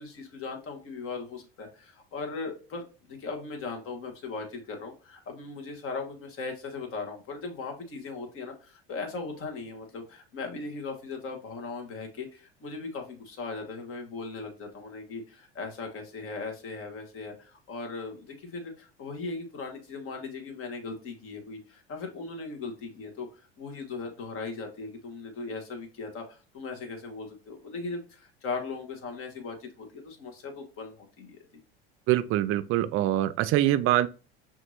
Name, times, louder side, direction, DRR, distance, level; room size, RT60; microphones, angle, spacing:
voice 1, 0.0-31.4, left 4 dB, 45° left, 1.3 m, -38 dB
voice 2, 32.1-34.1, right 14 dB, 45° right, 0.4 m, -24 dB
5.8 x 2.6 x 2.6 m
hypercardioid pair, 85°, 30 cm